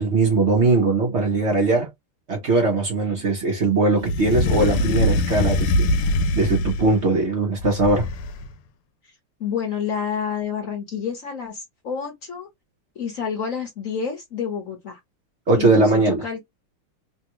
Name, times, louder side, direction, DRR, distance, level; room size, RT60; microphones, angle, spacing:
voice 1, 0.0-1.9 2.3-8.1 15.5-16.2, right 3 dB, 60° right, 0.7 m, -20 dB
sound 1, 4.0-7.1 7.6-8.5, left 1 dB, 80° left, 1.5 m, -23 dB
voice 2, 9.4-12.5 12.9-15.0 15.5-16.4, left 7 dB, 50° left, 1.1 m, -29 dB
3.5 x 2.2 x 3.0 m
omnidirectional pair, 2.4 m